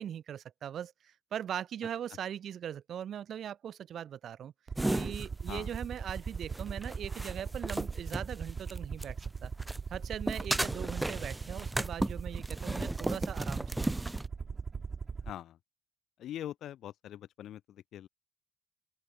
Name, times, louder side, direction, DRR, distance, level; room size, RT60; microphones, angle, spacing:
voice 1, 0.0-4.5 4.9-9.2 9.4-9.5 9.9-14.0, right 9 dB, 65° right, 3.0 m, -40 dB
Aircraft, 4.7-15.3, right 5 dB, 40° right, 2.3 m, -39 dB
sound 1, 4.8-9.3 9.6-14.3, right 1 dB, 10° right, 1.4 m, -35 dB
voice 2, 15.3-15.6 16.2-18.1, left 11 dB, 75° left, 1.7 m, -43 dB
open air
cardioid pair, 90°, 0 cm